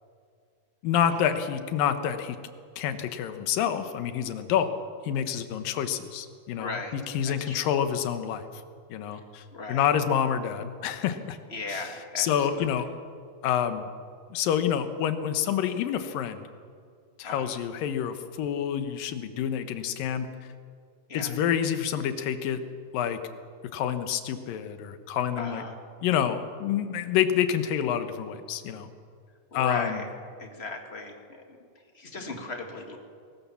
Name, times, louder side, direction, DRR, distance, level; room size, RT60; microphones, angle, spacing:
voice 1, 0.8-2.4 2.8-4.7 5.0-8.4 8.9-11.4 11.7-11.8 12.2-12.9 13.4-13.9 14.3-16.5 17.2-20.3 21.1-22.6 22.9-23.2 23.7-25.6 26.0-28.9 29.5-30.0, left 9 dB, 85° left, 9 dB, 2.9 m, -28 dB
voice 2, 6.5-6.9 7.2-7.7 9.1-9.2 9.5-9.9 11.5-12.6 17.2-17.6 21.1-21.3 25.3-25.7 29.5-30.1 30.4-31.2 31.9-33.0, left 3 dB, 25° left, 4 dB, 1.4 m, -37 dB
21.0 x 19.0 x 7.1 m, 2.2 s
omnidirectional pair, 3.9 m